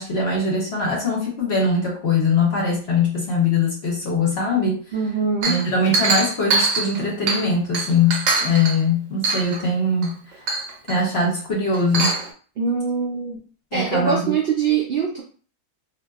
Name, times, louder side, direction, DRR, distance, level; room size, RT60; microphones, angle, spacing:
voice 1, 0.0-4.8 5.5-10.2 10.9-12.2 13.7-14.3, left 3 dB, 50° left, -2 dB, 0.8 m, -21 dB
voice 2, 4.9-5.7 12.6-13.4 13.7-15.2, right 5 dB, 85° right, -1 dB, 0.5 m, -23 dB
Chink clink, 5.4-7.5 7.7-8.8 9.2-9.6 10.0-10.1 10.5-11.0 11.7-12.3, right 3 dB, 65° right, 0.9 m, -23 dB
2.6 x 2.6 x 2.3 m, 0.41 s
omnidirectional pair, 1.6 m